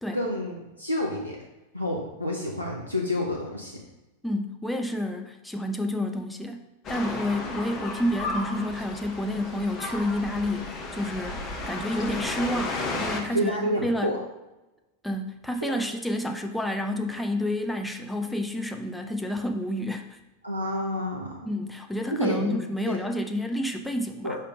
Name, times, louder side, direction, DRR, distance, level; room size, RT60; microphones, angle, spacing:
voice 1, 0.1-1.4 1.7-3.8 13.3-14.2 15.6-15.8 20.4-21.5 22.2-22.6 24.2-24.4, left 1 dB, 90° right, -2 dB, 0.7 m, -29 dB
voice 2, 4.2-14.1 15.0-20.2 21.5-24.4, left 1 dB, 5° left, 4 dB, 0.5 m, -29 dB
sound 1, 6.8-13.2, left 2 dB, 30° left, 1.0 m, -33 dB
5.0 x 4.5 x 4.7 m, 1.0 s
figure-of-eight pair, 90°, 0 cm